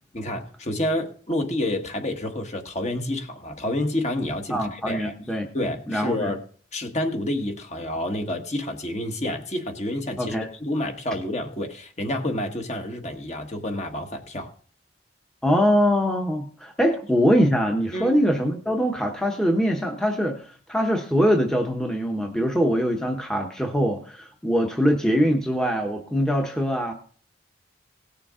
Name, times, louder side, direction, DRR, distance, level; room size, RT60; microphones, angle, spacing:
voice 1, 0.1-5.1 5.5-6.4 6.7-14.5 17.9-18.2, left 1 dB, 35° left, 1.3 m, -29 dB
voice 2, 4.5-5.5 5.9-6.3 10.2-10.5 15.4-26.9, equal, 5° left, 1.0 m, -23 dB
17.5 x 6.9 x 3.7 m
head